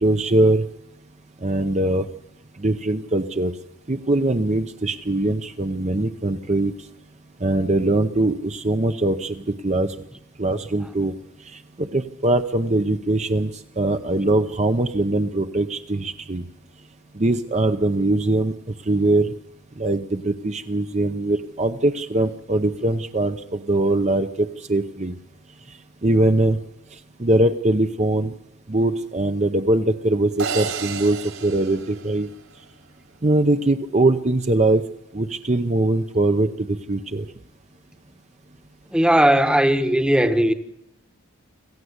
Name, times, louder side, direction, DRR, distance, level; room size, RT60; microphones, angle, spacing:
voice 1, 0.0-0.7 1.4-2.1 2.6-3.5 3.9-6.7 7.4-9.9 10.4-11.1 11.4-13.5 13.8-16.4 17.1-18.5 18.9-19.3 19.8-25.1 26.0-26.6 27.2-28.3 28.7-32.3 33.2-34.9 35.1-37.2, right 2 dB, 30° right, 0.7 m, -21 dB
sound 1, 30.4-32.7, right 5 dB, 70° right, 3.7 m, -31 dB
voice 2, 38.9-40.5, right 1 dB, 5° right, 1.1 m, -17 dB
27.0 x 15.0 x 8.1 m
head